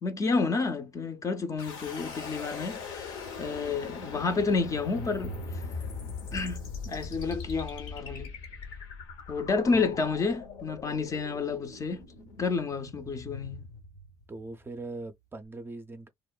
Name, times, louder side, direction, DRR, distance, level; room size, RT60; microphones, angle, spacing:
voice 1, 0.0-5.4 6.3-8.3 9.3-12.0 12.4-13.7, left 4 dB, 30° left, 0.5 m, -30 dB
sound 1, 1.6-14.5, left 4 dB, 70° left, 0.8 m, -41 dB
sound 2, 9.7-13.2, left 3 dB, 85° left, 1.8 m, -54 dB
voice 2, 14.3-16.1, right 2 dB, 20° right, 0.4 m, -40 dB
3.0 x 2.0 x 2.2 m
hypercardioid pair, 55°, 10 cm